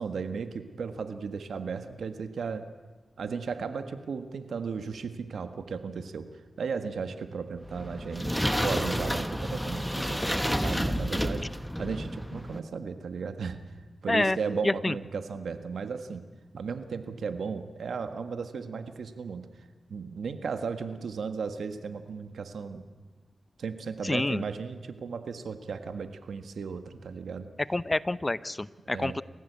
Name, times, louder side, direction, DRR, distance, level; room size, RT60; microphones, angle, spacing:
voice 1, 0.0-2.7 3.2-13.6 14.0-16.3 16.5-22.9 23.6-27.5 28.8-29.2, right 5 dB, 85° right, 9 dB, 1.6 m, -35 dB
sound 1, 7.6-12.6, equal, 5° left, 1.4 m, -30 dB
voice 2, 24.0-24.4 27.7-29.2, left 2 dB, 30° left, 17 dB, 0.8 m, -27 dB
28.5 x 15.0 x 8.2 m, 1.3 s
cardioid pair, 45°, 0 cm